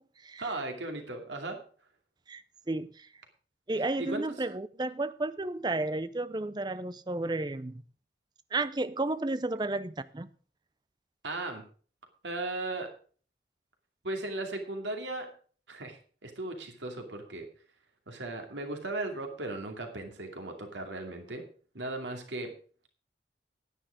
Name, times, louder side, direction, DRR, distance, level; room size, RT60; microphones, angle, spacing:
voice 1, 0.4-1.6 4.0-4.4 11.2-11.6 12.2-12.9 14.0-15.3 15.7-17.5 18.1-21.5 21.7-22.5, right 2 dB, 90° right, 2.6 m, -37 dB
voice 2, 2.3-3.1 3.7-7.8 8.5-10.3, right 2 dB, 25° right, 0.5 m, -32 dB
10.5 x 10.0 x 5.0 m
head